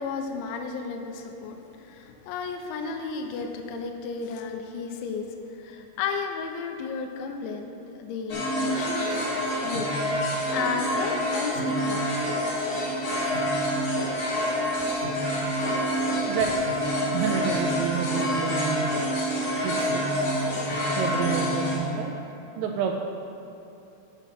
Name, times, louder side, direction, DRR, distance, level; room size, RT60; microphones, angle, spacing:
voice 1, 0.0-7.7 8.0-9.3 9.6-10.0 10.2-12.1, left 5 dB, 85° left, 4 dB, 2.7 m, -33 dB
sound 1, 8.3-21.7, equal, 45° left, 2.2 m, -27 dB
voice 2, 17.1-19.0 19.6-20.1 21.0-22.2 22.6-22.9, right 7 dB, 85° right, 2 dB, 2.9 m, -29 dB
8.1 x 7.2 x 5.7 m, 3.0 s
omnidirectional pair, 5.8 m